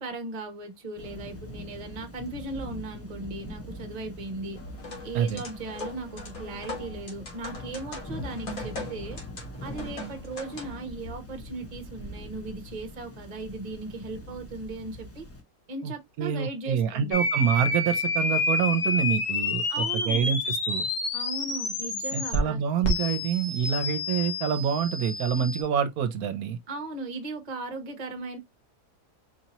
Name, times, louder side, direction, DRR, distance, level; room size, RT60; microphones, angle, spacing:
voice 1, 0.0-4.6 5.0-9.2 9.6-15.3 15.7-17.2 19.7-20.3 21.1-22.6 26.7-28.4, right 2 dB, 30° right, 0.9 m, -37 dB
Thunder / Rain, 1.0-15.4, equal, 20° left, 0.4 m, -42 dB
sound 1, 4.6-10.9, left 2 dB, 65° left, 2.1 m, -41 dB
voice 2, 15.8-20.9 22.1-26.6, right 8 dB, 75° right, 1.1 m, -27 dB
sound 2, 17.1-22.4 22.8-25.6, left 2 dB, 85° left, 1.9 m, -28 dB
4.7 x 2.8 x 2.9 m
omnidirectional pair, 1.6 m